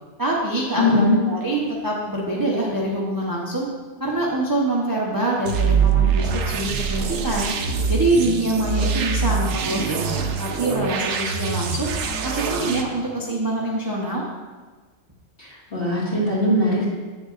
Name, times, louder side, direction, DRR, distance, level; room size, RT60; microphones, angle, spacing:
voice 1, 0.2-3.7 4.0-7.5 7.9-11.9 12.2-14.2, right 2 dB, 20° right, -4 dB, 0.6 m, -25 dB
voice 2, 0.8-1.2 15.4-16.8, left 1 dB, 45° left, -7 dB, 2.2 m, -20 dB
sound 1, 5.5-12.8, right 6 dB, 80° right, 1.0 m, -24 dB
8.4 x 6.7 x 2.5 m, 1.3 s
omnidirectional pair, 1.4 m